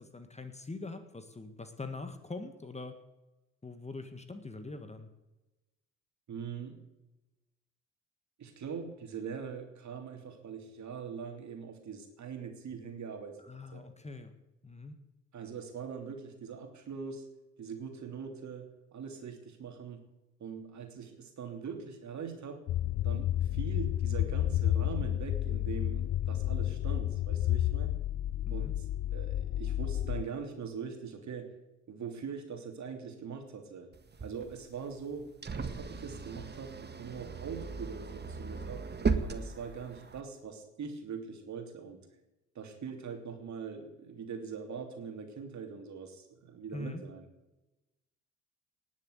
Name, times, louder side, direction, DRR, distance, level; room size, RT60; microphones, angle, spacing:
voice 1, 0.0-3.0 3.6-5.1 13.5-14.3 14.6-14.9 28.5-28.7 46.7-47.0, left 3 dB, 15° left, 9 dB, 1.7 m, -43 dB
voice 2, 6.3-6.8 8.4-13.8 15.3-17.3 17.6-20.0 20.4-22.6 23.0-27.9 28.5-28.8 29.1-31.5 31.9-33.9 34.2-38.8 39.2-42.0 42.5-47.3, right 6 dB, 45° right, 4 dB, 3.1 m, -42 dB
sound 1, 22.7-30.2, left 12 dB, 40° left, 0.5 m, -31 dB
sound 2, 33.9-40.2, right 4 dB, 25° right, 1.6 m, -37 dB
19.0 x 7.3 x 8.1 m, 1.0 s
hypercardioid pair, 55°, 38 cm